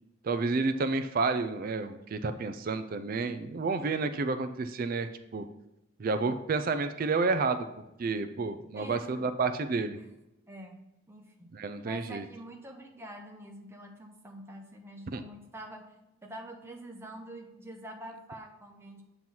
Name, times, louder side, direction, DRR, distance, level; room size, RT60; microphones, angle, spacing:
voice 1, 0.2-5.4 6.0-7.7 8.0-10.0 11.5-12.3 15.1-15.2, right 4 dB, 40° right, 10 dB, 0.3 m, -30 dB
voice 2, 8.7-9.3 10.5-10.8 11.1-11.5 11.8-15.9 16.2-19.0, right 1 dB, 10° right, 2 dB, 0.7 m, -46 dB
7.7 x 3.0 x 5.4 m, 0.91 s
head